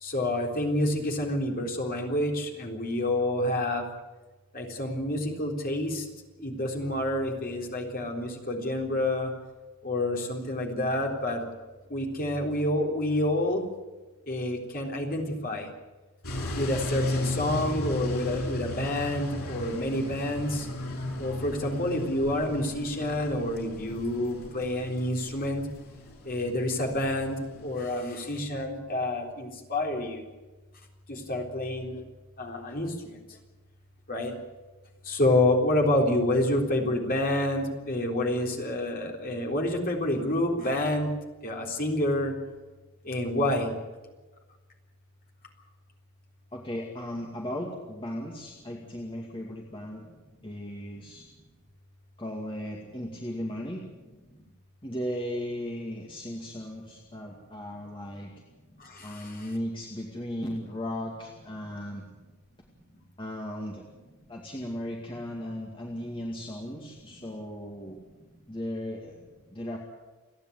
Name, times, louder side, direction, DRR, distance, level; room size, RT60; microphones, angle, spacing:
voice 1, 0.0-3.8 4.5-6.0 6.4-9.3 9.8-11.4 11.9-13.6 14.3-15.7 16.6-20.7 21.2-25.6 26.3-27.4 27.6-30.2 31.1-32.0 32.4-33.1 34.1-34.3 35.1-41.1 41.4-42.3 43.1-43.7 59.0-59.1, left 1 dB, 40° left, 1 dB, 3.8 m, -28 dB
sound 1, 16.2-27.8, left 1 dB, 90° left, 7.1 m, -36 dB
voice 2, 46.5-50.0 50.4-51.2 52.2-53.9 54.8-58.3 59.0-62.0 63.2-63.8 64.3-68.0 68.5-69.2 69.5-69.8, equal, 25° left, -1 dB, 2.3 m, -36 dB
29.5 x 10.5 x 9.5 m, 1.2 s
head